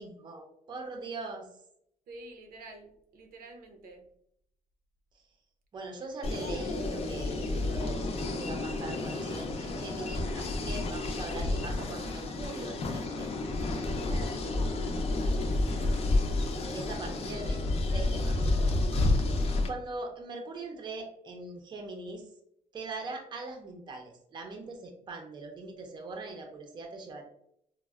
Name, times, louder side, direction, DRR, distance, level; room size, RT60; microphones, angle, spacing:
voice 1, 0.0-1.5 5.7-13.4 14.1-14.6 16.7-18.5 19.7-22.2 22.7-27.2, right 3 dB, 30° right, 3 dB, 0.5 m, -41 dB
voice 2, 2.1-4.1 15.4-16.1, right 2 dB, 85° right, 4 dB, 0.6 m, -49 dB
sound 1, 6.2-19.7, left 2 dB, 45° left, 0.5 m, -30 dB
4.1 x 2.0 x 2.3 m, 0.72 s
cardioid pair, 170°, 15 cm